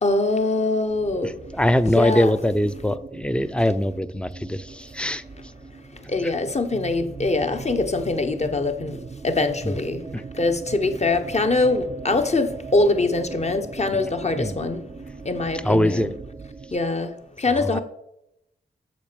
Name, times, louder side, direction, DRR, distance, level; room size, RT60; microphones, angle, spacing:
voice 1, 0.0-1.3 1.8-2.3 6.1-9.0 9.2-10.0 10.4-14.8 15.2-16.1 16.7-17.1 17.4-17.8, left 2 dB, 35° left, 1.3 m, -23 dB
sound 1, 0.9-16.8, right 4 dB, 30° right, 0.6 m, -39 dB
voice 2, 1.6-5.2 14.3-14.5 15.6-16.1 17.7-17.8, left 1 dB, 5° left, 0.7 m, -22 dB
7.6 x 6.6 x 7.1 m
cardioid pair, 50°, 19 cm